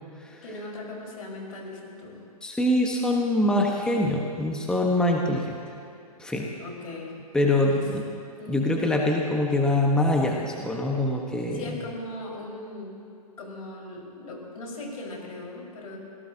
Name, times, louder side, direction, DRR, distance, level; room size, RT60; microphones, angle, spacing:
voice 1, 0.4-2.2 6.6-7.1 7.7-7.8 8.4-8.7 11.5-12.9 13.4-16.0, left 2 dB, 65° left, -2 dB, 4.9 m, -38 dB
voice 2, 2.4-5.5 6.2-6.5 7.3-8.0 8.5-11.7, left 1 dB, 5° left, -1 dB, 1.2 m, -24 dB
27.0 x 17.5 x 2.8 m, 2.5 s
hypercardioid pair, 120°, 20 cm